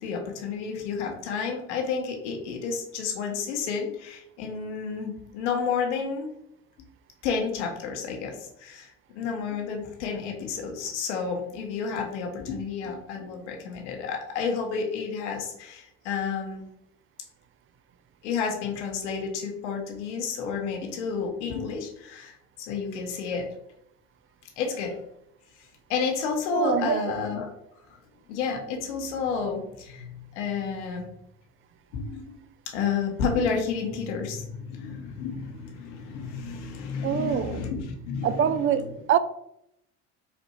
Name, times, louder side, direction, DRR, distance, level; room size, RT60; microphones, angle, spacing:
voice 1, 0.0-6.3 7.2-8.9 9.1-16.6 18.2-23.5 24.6-25.0 25.9-27.5 27.9-28.0 28.3-31.1 31.9-32.4 32.7-38.8, left 5 dB, 85° left, 1.0 m, -31 dB
voice 2, 26.5-27.2 37.0-37.6 38.2-39.2, right 9 dB, 40° right, 0.4 m, -25 dB
4.1 x 2.6 x 4.3 m
hypercardioid pair, 75°, 34 cm